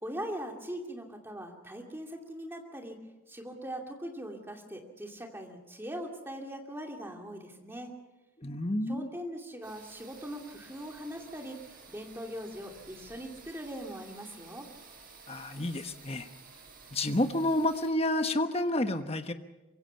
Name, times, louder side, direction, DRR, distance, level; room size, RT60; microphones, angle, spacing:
voice 1, 0.0-3.0 3.3-7.9 8.9-14.6, equal, 10° right, 1 dB, 2.6 m, -41 dB
voice 2, 8.4-9.1 15.3-16.3 16.9-19.3, left 1 dB, 30° left, 8 dB, 1.1 m, -29 dB
sound 1, 9.6-17.9, right 4 dB, 40° right, 6.4 m, -53 dB
24.5 x 22.0 x 5.8 m, 1.1 s
head